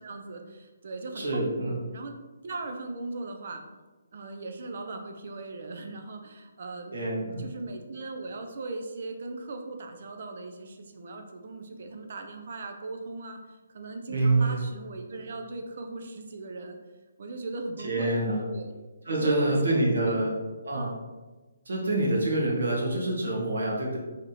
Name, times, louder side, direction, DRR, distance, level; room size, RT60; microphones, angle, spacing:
voice 1, 0.0-1.5 1.9-2.1 2.4-3.6 4.1-7.0 7.4-16.8 17.2-18.1 18.5-18.7 19.1-20.2 20.7-21.0, right 3 dB, 55° right, 4 dB, 0.6 m, -38 dB
voice 2, 1.1-1.8 6.9-7.5 14.1-14.6 17.8-18.4 19.1-20.3 20.6-20.9 21.7-24.0, right 2 dB, 75° right, -3 dB, 1.4 m, -26 dB
3.6 x 2.7 x 3.8 m, 1.2 s
hypercardioid pair, 155°, 0 cm